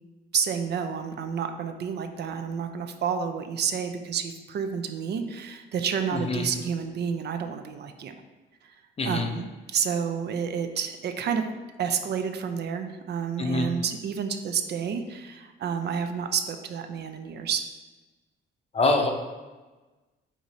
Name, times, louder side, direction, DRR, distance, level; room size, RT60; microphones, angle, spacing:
voice 1, 0.3-8.1 9.0-11.4 11.8-17.6, right 7 dB, 55° right, 7 dB, 0.4 m, -30 dB
voice 2, 18.7-19.1, left 2 dB, 30° left, 4 dB, 0.6 m, -24 dB
4.7 x 2.6 x 4.1 m, 1.2 s
cardioid pair, 90°, 20 cm